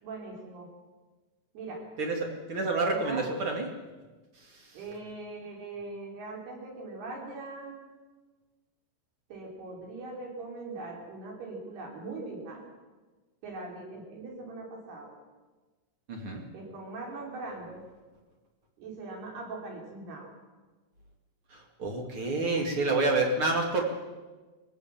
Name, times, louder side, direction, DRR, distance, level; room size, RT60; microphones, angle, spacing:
voice 1, 0.0-0.7 1.5-1.8 2.6-3.3 4.7-7.8 9.3-12.6 13.4-15.1 16.5-17.8 18.8-20.3, right 3 dB, 60° right, 0 dB, 6.0 m, -41 dB
voice 2, 2.0-3.7 16.1-16.4 21.5-23.8, right 3 dB, 40° right, 2 dB, 2.1 m, -28 dB
23.0 x 16.5 x 7.4 m, 1.3 s
omnidirectional pair, 5.3 m